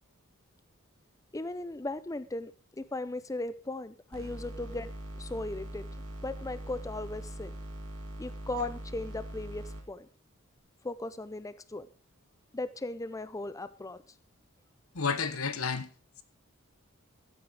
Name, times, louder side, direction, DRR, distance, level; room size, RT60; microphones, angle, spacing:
voice 1, 1.3-2.5 2.8-4.9 5.2-5.9 6.2-7.5 8.2-10.1 10.8-11.9 12.5-14.0, left 2 dB, 15° left, 0.5 m, -37 dB
sound 1, 4.1-9.8, right 1 dB, 90° right, 2.5 m, -42 dB
voice 2, 14.9-15.9, left 5 dB, 90° left, 1.1 m, -31 dB
14.5 x 8.4 x 4.8 m
head